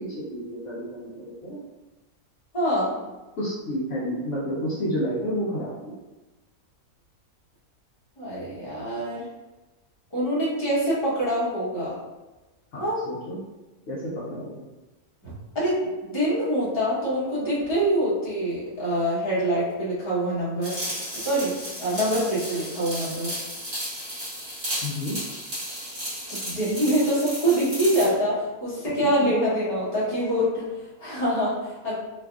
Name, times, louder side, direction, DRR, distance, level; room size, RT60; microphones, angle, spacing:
voice 1, 0.0-1.6 3.4-5.9 12.7-13.4 13.9-14.6 24.8-25.2, equal, 65° left, -8 dB, 0.9 m, -30 dB
voice 2, 2.5-2.9 8.2-9.3 10.1-12.0 12.8-13.0 15.2-20.8 21.2-23.3 26.3-32.0, right 1 dB, 25° left, -9 dB, 0.8 m, -25 dB
sound 1, 20.6-28.1, equal, 45° right, 1.4 m, -34 dB
3.3 x 2.3 x 2.3 m, 1.1 s
omnidirectional pair, 1.5 m